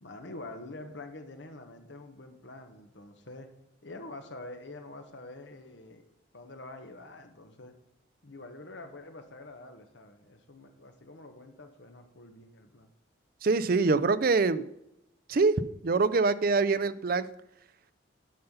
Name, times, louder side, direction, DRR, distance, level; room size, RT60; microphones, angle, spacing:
voice 1, 0.0-3.5 3.8-6.1 6.3-7.7 8.2-12.9, left 2 dB, 70° left, 6 dB, 1.2 m, -46 dB
voice 2, 13.4-14.6 15.3-17.3, right 4 dB, 50° right, 14 dB, 0.4 m, -25 dB
10.5 x 5.6 x 5.5 m, 0.83 s
head